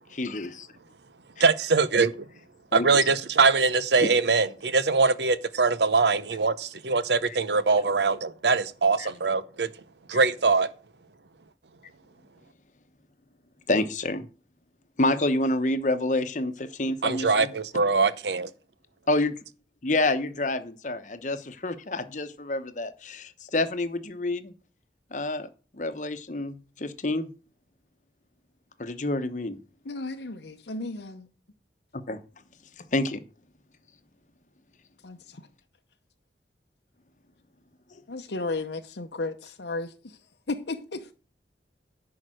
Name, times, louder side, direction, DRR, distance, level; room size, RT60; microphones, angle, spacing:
voice 1, 0.2-0.7 1.4-1.5 2.7-2.9 4.0-4.1 7.2-7.4 9.0-9.1 10.1-10.3 13.7-14.3 15.0-17.5 19.1-19.3 19.8-24.5 25.1-27.3 28.8-29.6 32.1-32.2 32.9-33.2, left 2 dB, 45° left, 1.0 m, -28 dB
voice 2, 1.4-2.2 2.7-9.7 10.1-10.7 17.0-18.5, right 4 dB, 80° right, 0.8 m, -23 dB
voice 3, 29.8-31.3 35.0-35.4 38.1-40.2 40.5-41.1, left 3 dB, 85° left, 0.8 m, -34 dB
11.0 x 4.8 x 7.7 m
head